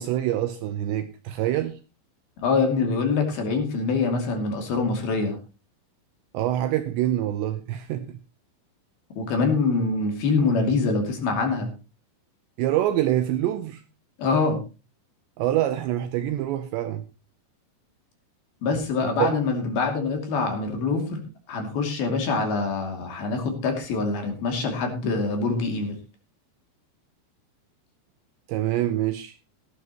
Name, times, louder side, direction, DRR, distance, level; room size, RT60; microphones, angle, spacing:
voice 1, 0.0-1.8 6.3-8.2 12.6-13.8 15.4-17.1 19.2-19.4 28.5-29.4, right 13 dB, 80° right, 2.6 m, -25 dB
voice 2, 2.4-5.4 9.2-11.7 14.2-14.6 18.6-21.2 21.5-26.0, left 4 dB, 55° left, 4.1 m, -24 dB
17.0 x 12.5 x 3.0 m
omnidirectional pair, 5.8 m